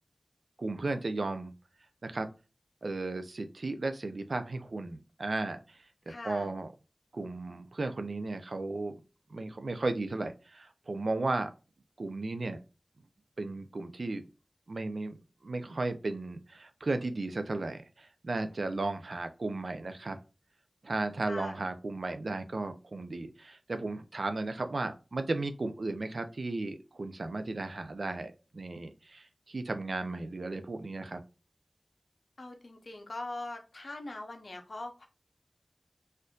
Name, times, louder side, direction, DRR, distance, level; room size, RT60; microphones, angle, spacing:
voice 1, 0.6-1.5 2.0-2.3 2.8-5.8 6.2-6.7 7.1-9.0 9.3-11.5 12.0-12.6 13.4-14.2 14.7-15.1 15.4-20.2 20.8-31.2, right 2 dB, 85° right, 8 dB, 0.4 m, -35 dB
voice 2, 6.1-6.6 21.3-21.6 32.4-35.1, left 2 dB, 80° left, 4 dB, 0.7 m, -42 dB
4.3 x 2.6 x 2.3 m, 0.30 s
wide cardioid pair, 50°, 0 cm